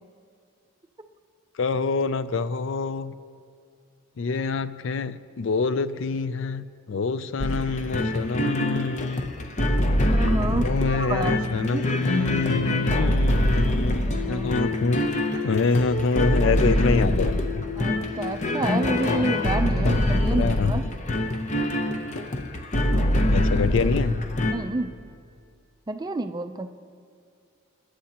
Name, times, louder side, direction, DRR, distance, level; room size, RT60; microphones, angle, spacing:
voice 1, 1.6-3.1 4.2-9.3 10.6-15.1 15.4-17.6 19.8-20.7 23.3-24.2, left 4 dB, 60° left, 14 dB, 0.4 m, -26 dB
sound 1, 7.4-24.5, left 1 dB, 35° left, 0.7 m, -24 dB
voice 2, 10.1-11.9 14.0-14.5 17.8-20.8 22.9-23.1 24.5-24.9 25.9-26.8, right 2 dB, 20° right, 8 dB, 0.4 m, -29 dB
24.5 x 10.0 x 2.9 m, 2.3 s
head